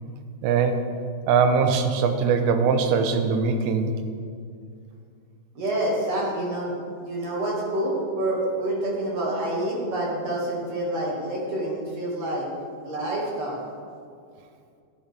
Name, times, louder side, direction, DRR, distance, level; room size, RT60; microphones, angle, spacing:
voice 1, 0.4-0.9 1.3-4.0, right 5 dB, 85° right, 7 dB, 2.9 m, -21 dB
voice 2, 5.6-12.5 12.8-13.6, right 1 dB, 45° right, -4 dB, 2.4 m, -27 dB
13.0 x 12.0 x 3.4 m, 2.3 s
omnidirectional pair, 5.4 m